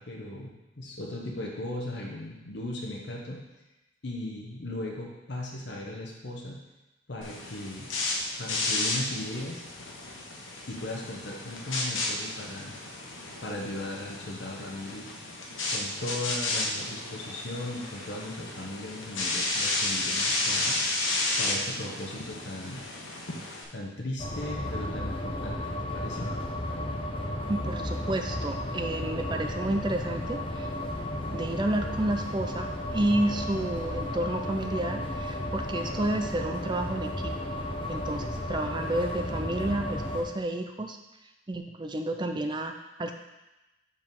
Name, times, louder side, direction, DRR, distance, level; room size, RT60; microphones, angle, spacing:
voice 1, 0.0-3.4 4.0-6.6 7.1-7.9 8.4-9.6 10.7-12.7 13.4-15.1 15.7-20.8 21.4-22.9 23.7-26.3, left 1 dB, 60° left, -2 dB, 1.0 m, -37 dB
sound 1, 7.2-23.6, left 2 dB, 90° left, 1.2 m, -32 dB
sound 2, 24.2-40.2, left 1 dB, 25° left, 0.7 m, -33 dB
voice 2, 27.5-30.7 31.3-37.3 37.9-41.0 41.5-42.7 43.0-43.1, right 1 dB, 25° right, 6 dB, 0.5 m, -30 dB
5.1 x 4.9 x 5.3 m, 1.0 s
head